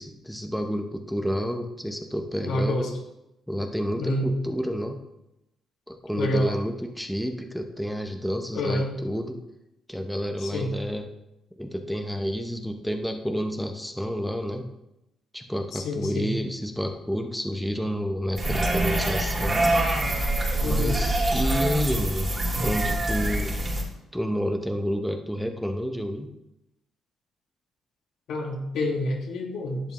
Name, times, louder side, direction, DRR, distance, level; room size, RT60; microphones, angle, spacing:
voice 1, 0.0-2.9 3.5-5.0 5.9-9.4 9.9-11.1 11.6-14.7 15.3-19.7 20.6-22.3 22.6-23.6 24.1-26.3, equal, ahead, 4 dB, 0.9 m, -30 dB
voice 2, 2.4-2.9 4.0-4.3 6.1-6.5 8.5-8.9 10.4-10.7 15.7-16.3 20.6-21.0 28.3-29.9, left 1 dB, 75° left, 0 dB, 2.0 m, -28 dB
sound 1, 18.4-23.8, right 1 dB, 30° right, 3.4 m, -25 dB
11.0 x 8.1 x 3.1 m, 0.90 s
cardioid pair, 90°, 0 cm